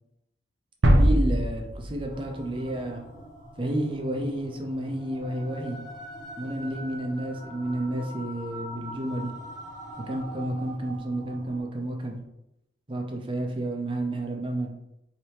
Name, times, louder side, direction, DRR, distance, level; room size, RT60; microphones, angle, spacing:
sound 1, 0.8-2.7, right 1 dB, 70° right, 0.6 m, -22 dB
voice 1, 1.0-3.0 3.6-5.8 6.4-9.3 10.1-12.2 12.9-14.7, right 1 dB, 25° right, 2 dB, 0.6 m, -31 dB
Shadow Maker-Entrance Hall, 2.1-11.6, right 1 dB, 20° left, 1.0 m, -43 dB
4.3 x 2.9 x 3.3 m, 0.84 s
head